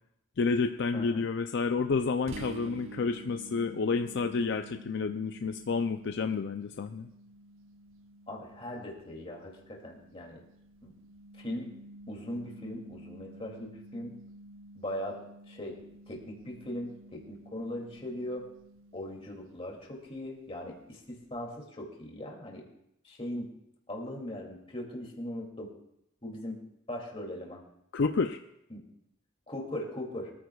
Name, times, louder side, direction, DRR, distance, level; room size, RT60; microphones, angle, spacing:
voice 1, 0.4-7.1 27.9-28.4, left 4 dB, 55° left, 8 dB, 0.4 m, -30 dB
voice 2, 0.9-1.2 8.3-10.4 10.8-10.9 11.4-11.7 12.1-14.1 14.8-15.2 15.5-15.8 16.1-18.5 18.9-22.7 23.0-23.5 23.9-25.7 26.2-26.6 26.9-27.6 28.7-28.8 29.5-30.3, left 1 dB, 25° left, 0 dB, 2.5 m, -39 dB
sound 1, 2.3-19.8, right 2 dB, 70° right, 0.9 m, -50 dB
23.0 x 14.0 x 2.3 m, 0.80 s
head